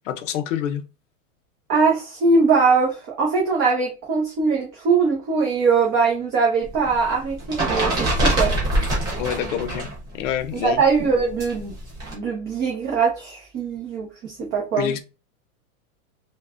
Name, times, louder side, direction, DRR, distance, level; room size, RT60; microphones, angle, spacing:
voice 1, 0.1-0.8 9.2-9.9 10.1-10.8 14.8-15.0, left 9 dB, 60° left, 0.7 m, -26 dB
voice 2, 1.7-8.5 10.6-11.7 12.1-14.9, right 4 dB, 25° right, 0.8 m, -21 dB
sound 1, 6.6-10.0 10.2-12.1, right 1 dB, 10° right, 0.3 m, -24 dB
3.1 x 2.3 x 2.4 m
supercardioid pair, 145°, 43 cm